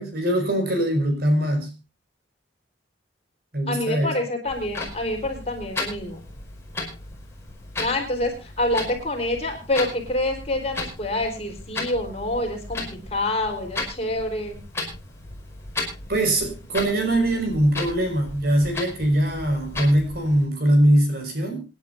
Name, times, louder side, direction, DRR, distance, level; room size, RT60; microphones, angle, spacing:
voice 1, 0.0-1.7 3.5-4.1 16.1-21.7, right 1 dB, 55° right, 5 dB, 5.8 m, -22 dB
voice 2, 3.7-6.2 7.8-14.6, left 1 dB, 35° left, 2 dB, 4.4 m, -27 dB
Clock, 4.4-20.5, left 2 dB, 15° left, 5.3 m, -35 dB
27.0 x 10.5 x 2.7 m, 0.29 s
head